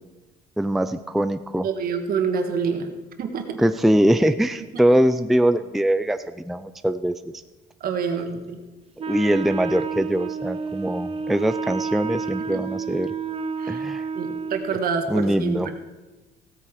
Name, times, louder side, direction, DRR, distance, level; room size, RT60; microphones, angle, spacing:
voice 1, 0.6-1.7 3.6-7.2 9.1-13.1 13.7-14.1 15.1-15.7, equal, ahead, 10 dB, 0.4 m, -22 dB
voice 2, 1.6-2.9 3.2-3.6 7.8-8.6 12.5-12.6 13.6-13.8 14.1-15.7, right 6 dB, 60° right, 6 dB, 1.7 m, -27 dB
Wind instrument woodwind instrument, 9.0-14.8, right 5 dB, 35° right, 0.8 m, -30 dB
16.0 x 8.6 x 4.9 m, 1.1 s
cardioid pair, 110°, 17 cm